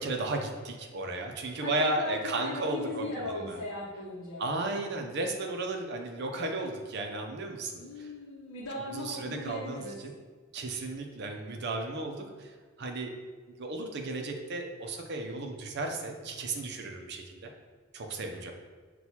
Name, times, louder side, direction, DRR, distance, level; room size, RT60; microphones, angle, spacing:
voice 1, 0.0-3.6 4.4-8.1 8.9-10.2 10.5-13.1 13.6-17.5 17.9-18.5, right 2 dB, 55° right, 3 dB, 0.5 m, -34 dB
voice 2, 1.6-4.4 7.8-9.9, left 2 dB, 85° left, -7 dB, 0.8 m, -38 dB
5.9 x 2.3 x 2.8 m, 1.5 s
head